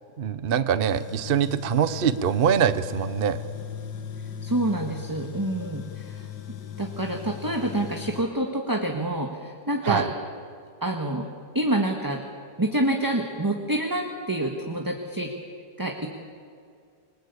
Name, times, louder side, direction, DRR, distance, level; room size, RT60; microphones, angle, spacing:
voice 1, 0.2-3.4 9.8-10.1, right 8 dB, 45° right, 13 dB, 0.8 m, -23 dB
Tools, 0.9-8.2, left 9 dB, 75° left, 1.7 m, -38 dB
voice 2, 4.4-6.3 6.8-10.1 10.8-11.3 11.5-12.2 12.6-15.3 15.8-16.1, right 1 dB, 10° right, 2 dB, 1.6 m, -27 dB
28.0 x 20.5 x 8.4 m, 2.3 s
omnidirectional pair, 1.8 m